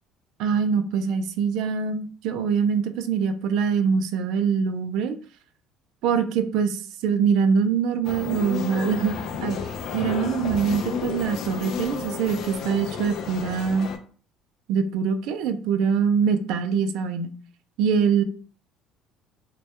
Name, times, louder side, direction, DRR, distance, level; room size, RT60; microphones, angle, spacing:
voice 1, 0.4-5.2 6.0-9.2 9.4-9.6 9.9-13.9 14.7-17.3 17.8-18.2, right 6 dB, 75° right, 9 dB, 0.3 m, -24 dB
sound 1, 8.0-14.0, left 6 dB, 60° left, 0.3 m, -32 dB
2.2 x 2.0 x 2.8 m, 0.43 s
cardioid pair, 110°, 0 cm